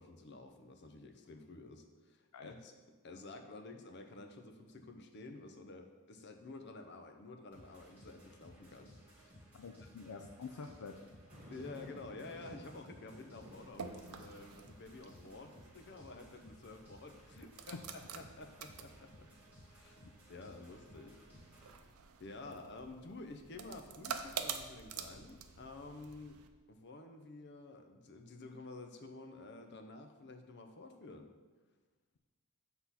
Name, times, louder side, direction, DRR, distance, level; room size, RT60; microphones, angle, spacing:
voice 1, 0.0-9.9 11.5-19.3 19.7-21.2 21.5-21.9 22.2-26.4 26.7-31.3, left 3 dB, 50° left, 6 dB, 0.7 m, -51 dB
sound 1, 7.5-21.7, equal, 5° right, 1.9 m, -60 dB
voice 2, 9.5-10.9 22.5-22.6, left 5 dB, 90° left, 4 dB, 0.5 m, -48 dB
sound 2, 11.3-16.8 17.3-17.4 21.3-22.4, right 1 dB, 35° right, 1.3 m, -57 dB
sound 3, 13.4-26.5, right 6 dB, 80° right, 0.6 m, -49 dB
8.1 x 3.9 x 5.7 m, 1.3 s
head